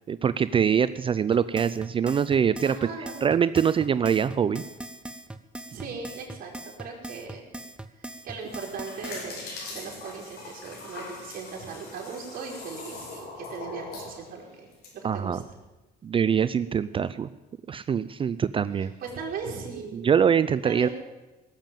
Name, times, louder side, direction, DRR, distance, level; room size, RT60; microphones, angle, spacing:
voice 1, 0.1-2.7 3.2-4.6 15.0-15.4 16.0-17.3 17.7-18.9 19.9-20.9, right 7 dB, 30° right, 15 dB, 0.4 m, -24 dB
sound 1, 1.3-9.3, right 1 dB, 5° right, 0.9 m, -40 dB
voice 2, 2.7-3.2 5.7-7.5 8.2-14.7 14.9-15.4 19.0-20.1 20.6-20.9, right 5 dB, 55° right, -1 dB, 4.2 m, -38 dB
sound 2, 8.3-14.9, left 3 dB, 70° left, 4.5 m, -41 dB
18.0 x 7.4 x 9.1 m, 1.1 s
cardioid pair, 110°, 17 cm